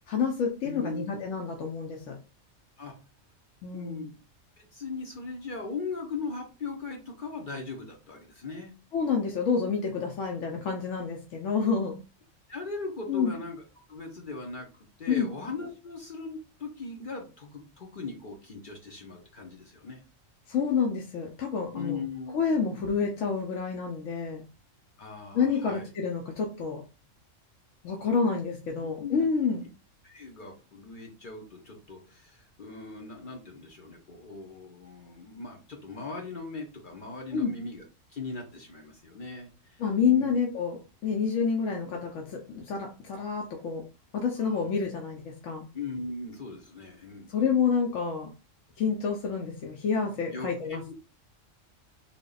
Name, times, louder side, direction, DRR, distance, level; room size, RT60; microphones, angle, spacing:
voice 1, 0.1-2.1 3.6-4.1 8.9-12.0 13.1-13.3 15.1-15.3 20.5-22.0 22.3-24.4 25.3-26.8 27.8-29.6 37.3-37.5 39.8-43.8 44.1-45.7 47.3-48.3 48.8-50.8, left 6 dB, 75° left, 1 dB, 1.0 m, -28 dB
voice 2, 0.6-1.1 2.8-3.0 3.7-4.1 4.6-8.7 12.5-13.6 13.9-20.0 21.7-22.9 25.0-25.9 28.8-29.3 30.0-37.8 38.1-39.8 40.1-40.3 44.4-44.7 45.7-47.3 50.3-50.9, left 3 dB, 45° left, 2 dB, 0.8 m, -39 dB
3.4 x 2.3 x 3.8 m, 0.31 s
omnidirectional pair, 1.3 m